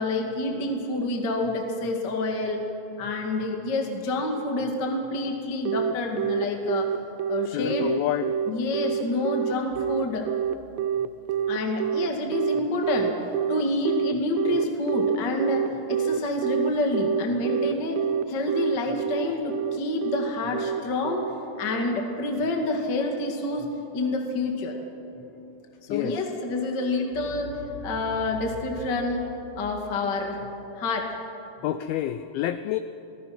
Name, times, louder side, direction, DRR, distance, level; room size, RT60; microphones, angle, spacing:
voice 1, 0.0-2.6 3.0-6.9 7.3-7.9 8.5-10.3 11.5-13.2 13.5-18.0 18.3-21.2 21.6-23.7 23.9-24.8 25.9-29.3 29.6-30.4 30.8-31.1, left 2 dB, 35° left, 1 dB, 1.8 m, -28 dB
Telephone, 5.7-21.8, right 8 dB, 80° right, 2.8 m, -27 dB
voice 2, 7.5-8.3 25.9-26.2 31.6-32.8, left 12 dB, 90° left, 11 dB, 2.1 m, -28 dB
28.0 x 19.0 x 6.0 m, 2.9 s
omnidirectional pair, 5.0 m